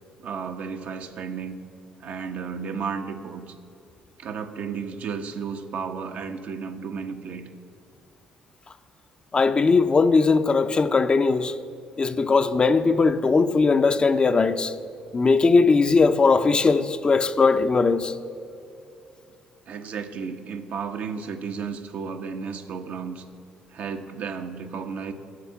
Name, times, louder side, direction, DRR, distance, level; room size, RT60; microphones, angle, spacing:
voice 1, 0.2-1.6 2.0-3.6 4.2-7.5 19.7-23.2 23.7-25.1, right 6 dB, 65° right, 1.0 m, -33 dB
voice 2, 9.3-11.6 12.0-14.7 15.1-18.1, left 4 dB, 35° left, 0.6 m, -19 dB
9.8 x 7.2 x 8.4 m
supercardioid pair, 70°, 3 cm